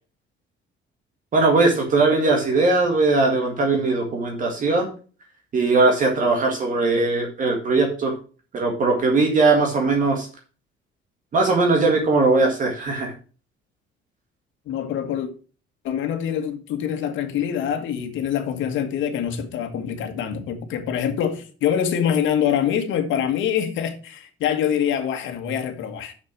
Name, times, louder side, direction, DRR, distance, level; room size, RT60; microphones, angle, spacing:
voice 1, 1.3-4.9 5.5-8.1 8.5-10.3 11.3-13.1, right 3 dB, 40° right, 1.9 m, -19 dB
voice 2, 14.7-15.3 15.8-26.1, left 9 dB, 70° left, 1.8 m, -25 dB
6.8 x 6.2 x 6.1 m
cardioid pair, 145°, 20 cm